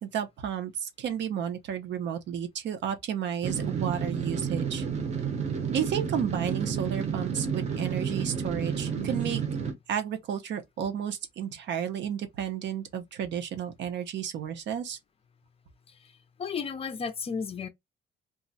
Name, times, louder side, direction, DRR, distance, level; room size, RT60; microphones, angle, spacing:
voice 1, 0.0-4.8 5.7-9.4 9.9-15.0, right 9 dB, 65° right, 0.7 m, -32 dB
sound 1, 3.4-9.7, right 6 dB, 35° right, 0.7 m, -31 dB
voice 2, 15.9-17.7, left 6 dB, 30° left, 0.4 m, -34 dB
2.4 x 2.1 x 3.9 m
cardioid pair, 180°, 20 cm